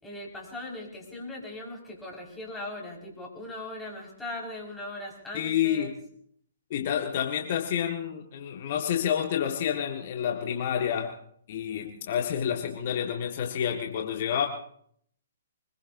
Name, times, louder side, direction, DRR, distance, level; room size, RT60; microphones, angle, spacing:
voice 1, 0.0-5.9, left 1 dB, 5° left, -3 dB, 5.3 m, -39 dB
voice 2, 5.3-5.9 6.7-11.1 11.5-14.5, left 9 dB, 50° left, 3 dB, 1.7 m, -29 dB
25.0 x 21.0 x 2.7 m, 0.63 s
hypercardioid pair, 135°, 0 cm